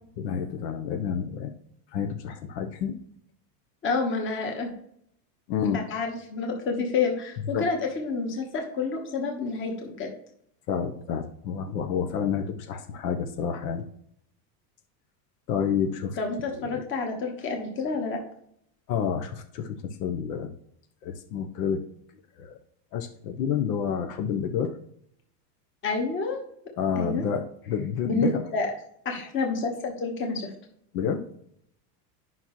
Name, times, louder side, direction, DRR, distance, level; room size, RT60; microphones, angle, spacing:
voice 1, 0.2-1.5 1.9-3.0 5.5-5.8 7.5-7.7 10.7-13.8 15.5-16.2 16.6-16.8 18.9-20.5 21.0-21.8 22.4-22.6 22.9-24.7 26.8-28.5 30.9-31.2, left 7 dB, 75° left, 5 dB, 1.0 m, -29 dB
voice 2, 3.8-4.7 5.9-10.1 16.2-18.2 25.8-26.4 26.9-27.2 28.0-28.7 29.0-30.5, left 4 dB, 25° left, 2 dB, 1.3 m, -29 dB
9.7 x 5.7 x 3.1 m, 0.69 s
supercardioid pair, 160°, 49 cm